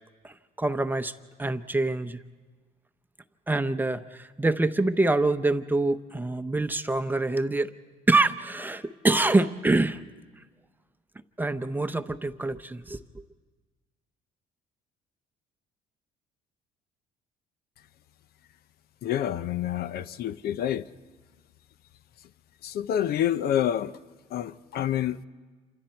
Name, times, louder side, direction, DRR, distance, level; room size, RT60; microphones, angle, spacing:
voice 1, 0.2-1.1 1.4-2.2 3.5-7.7 8.1-10.0 11.4-13.0, right 2 dB, 10° right, 10 dB, 0.7 m, -25 dB
voice 2, 19.0-20.9 22.6-23.9 24.3-25.2, left 10 dB, 65° left, 14 dB, 0.7 m, -28 dB
28.0 x 26.5 x 4.5 m, 1.4 s
cardioid pair, 110°, 17 cm